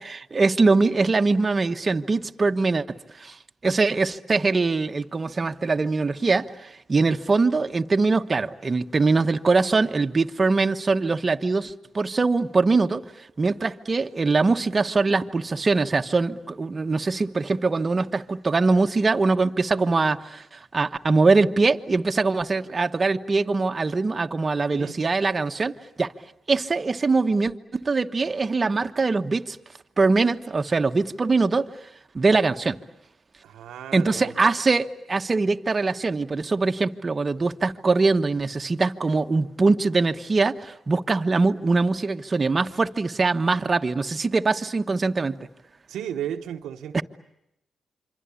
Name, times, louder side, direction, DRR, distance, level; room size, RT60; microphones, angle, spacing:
voice 1, 0.1-3.4 3.6-26.1 26.5-29.6 30.0-31.7 32.1-32.8 33.9-45.5 46.9-47.0, right 3 dB, 40° right, 1.2 m, -22 dB
voice 2, 33.4-34.3 45.9-47.0, right 10 dB, 90° right, 1.1 m, -34 dB
27.0 x 25.0 x 8.5 m
cardioid pair, 60°, 0 cm